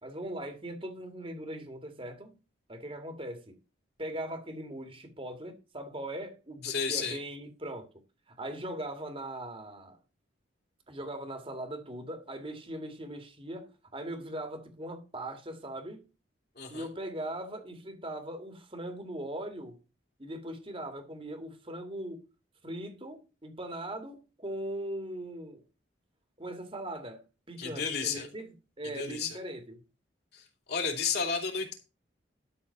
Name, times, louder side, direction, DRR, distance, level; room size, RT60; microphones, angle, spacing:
voice 1, 0.0-2.4 2.7-3.5 4.0-7.9 8.3-10.0 10.9-16.1 16.7-19.8 20.2-22.2 22.6-25.6 26.4-29.8, right 1 dB, 30° right, 2.1 m, -40 dB
voice 2, 6.6-7.2 16.6-16.8 27.6-28.3 28.9-29.4 30.3-31.7, left 5 dB, 55° left, 3.1 m, -32 dB
12.5 x 4.3 x 7.0 m
head